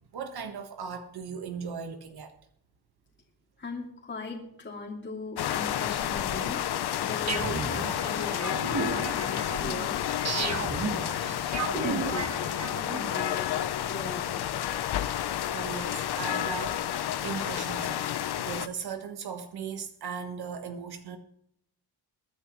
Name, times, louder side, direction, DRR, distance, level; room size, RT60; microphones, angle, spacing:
voice 1, 0.1-2.3 15.5-18.0 18.4-21.2, right 6 dB, 70° right, 1.5 m, -37 dB
voice 2, 3.6-6.6 7.0-11.2 11.6-12.6 12.9-13.5 13.8-14.5, left 3 dB, 30° left, 2.7 m, -39 dB
sound 1, 5.4-18.7, left 11 dB, 75° left, 0.9 m, -30 dB
sound 2, 7.3-13.1, right 4 dB, 40° right, 1.5 m, -34 dB
22.5 x 10.0 x 3.2 m
wide cardioid pair, 130°, 39 cm